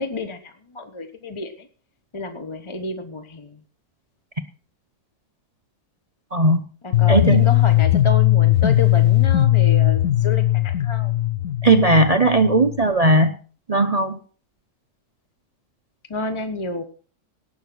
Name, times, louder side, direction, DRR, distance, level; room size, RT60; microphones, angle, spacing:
voice 1, 0.0-1.7 2.1-3.6 6.8-11.1 16.1-16.8, left 2 dB, 25° left, 7 dB, 0.8 m, -30 dB
voice 2, 6.3-6.6 7.1-7.5 11.6-13.3 13.7-14.2, right 2 dB, 65° right, 9 dB, 0.3 m, -17 dB
sound 1, 6.9-12.9, left 15 dB, 55° left, 1.3 m, -18 dB
18.0 x 6.4 x 6.1 m, 0.41 s
omnidirectional pair, 1.9 m